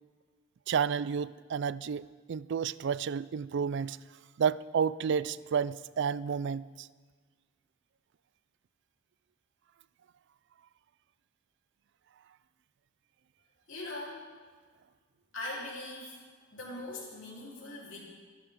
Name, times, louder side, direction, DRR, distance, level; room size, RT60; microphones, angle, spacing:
voice 1, 0.7-4.0 4.4-6.9, right 7 dB, 60° right, 18 dB, 0.4 m, -31 dB
voice 2, 13.7-14.3 15.3-16.2 16.5-18.0, left 2 dB, 65° left, -4 dB, 3.7 m, -41 dB
25.0 x 10.5 x 3.7 m, 1.5 s
head